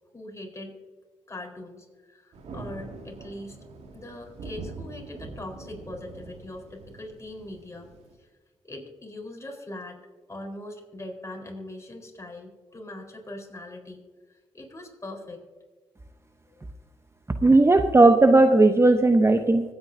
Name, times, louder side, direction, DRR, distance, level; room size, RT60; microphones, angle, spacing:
voice 1, 0.1-0.7 1.3-3.6 3.9-7.9 8.2-8.3 8.6-10.0 10.3-14.0 14.3-15.4 16.5-16.6, left 1 dB, 25° left, 1 dB, 4.2 m, -41 dB
Thunder, 2.3-8.1, right 3 dB, 75° right, 2.0 m, -43 dB
voice 2, 17.4-19.6, right 2 dB, 25° right, 8 dB, 0.8 m, -16 dB
25.0 x 8.9 x 2.7 m, 1.4 s
supercardioid pair, 45°, 11 cm